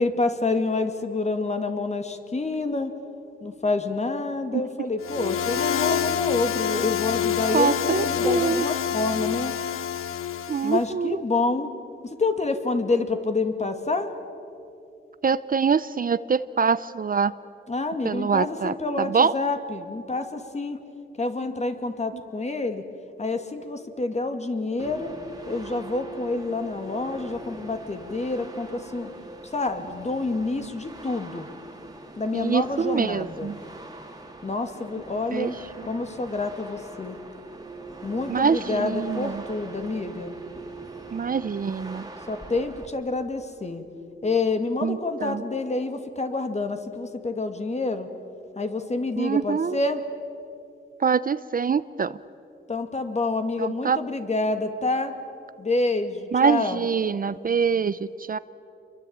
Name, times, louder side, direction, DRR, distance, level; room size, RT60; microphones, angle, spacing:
voice 1, 0.0-2.9 3.4-9.6 10.0-10.1 10.6-11.7 12.0-14.1 17.7-20.8 21.2-22.8 23.2-25.1 25.5-29.1 29.5-31.5 32.2-33.5 34.4-35.6 35.8-37.2 38.0-40.4 42.3-43.8 44.2-48.1 48.6-50.0 52.7-55.1 55.6-56.9, left 3 dB, 30° left, 7 dB, 2.2 m, -28 dB
sound 1, 5.0-10.8, left 9 dB, 90° left, 0.7 m, -27 dB
voice 2, 7.5-8.6 10.5-11.2 15.2-17.3 18.0-19.3 32.3-33.6 35.3-35.5 38.3-39.4 41.1-42.1 44.8-45.4 49.2-49.8 51.0-52.2 53.6-54.0 56.3-58.0 58.3-58.4, right 6 dB, 45° right, 16 dB, 0.5 m, -24 dB
sound 2, 24.8-42.9, right 3 dB, 20° right, 2.5 m, -42 dB
28.0 x 23.0 x 8.8 m, 2.6 s
wide cardioid pair, 115°, 21 cm